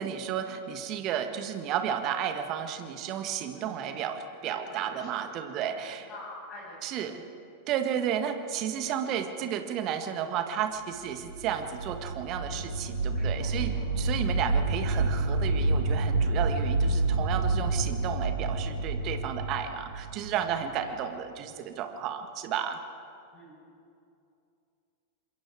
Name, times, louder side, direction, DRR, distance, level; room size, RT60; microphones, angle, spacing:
voice 1, 0.0-6.1 6.8-7.2 7.7-22.8, right 9 dB, 40° right, 7 dB, 1.7 m, -32 dB
voice 2, 4.4-7.1 10.1-10.3 13.1-13.8 20.8-21.0 23.3-23.6, left 1 dB, 25° left, -5 dB, 7.4 m, -48 dB
sound 1, 11.1-20.9, right 2 dB, 75° right, 1.7 m, -28 dB
26.5 x 22.0 x 4.8 m, 2.6 s
figure-of-eight pair, 90°, 0 cm